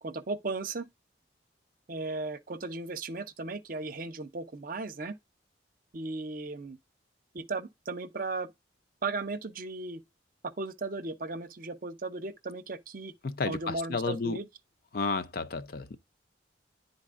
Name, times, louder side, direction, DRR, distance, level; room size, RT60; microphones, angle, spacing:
voice 1, 0.0-0.9 1.9-5.2 5.9-6.8 7.3-8.5 9.0-10.0 10.4-13.1 13.4-14.5, right 3 dB, 45° right, 0.6 m, -36 dB
voice 2, 13.2-14.4 14.9-16.0, left 4 dB, 50° left, 0.5 m, -32 dB
11.0 x 4.0 x 2.5 m
head